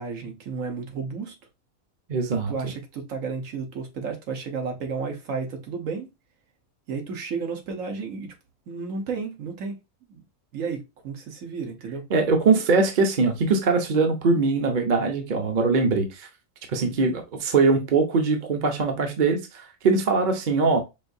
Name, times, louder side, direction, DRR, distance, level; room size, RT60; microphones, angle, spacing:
voice 1, 0.0-1.3 2.5-6.1 6.9-8.3 8.7-9.8 10.1-10.2 10.5-12.1, right 5 dB, 70° right, 1.5 m, -32 dB
voice 2, 2.1-2.5 12.1-16.3 16.7-20.8, right 4 dB, 40° right, 0.9 m, -22 dB
5.2 x 2.7 x 2.6 m
omnidirectional pair, 1.4 m